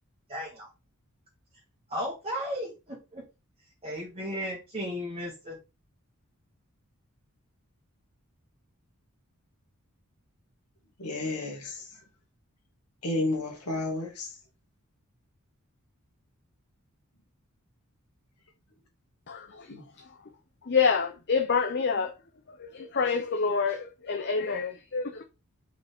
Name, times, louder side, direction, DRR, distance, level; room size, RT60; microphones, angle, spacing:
voice 1, 0.3-0.7 1.9-3.2 3.8-5.6, equal, 25° right, 1.8 m, -35 dB
voice 2, 11.0-11.8 13.0-14.3 19.7-19.9, left 2 dB, 85° left, 2.2 m, -31 dB
voice 3, 19.3-20.1 20.6-22.1 22.5-25.2, left 5 dB, 50° left, 0.7 m, -28 dB
5.3 x 5.1 x 3.6 m
head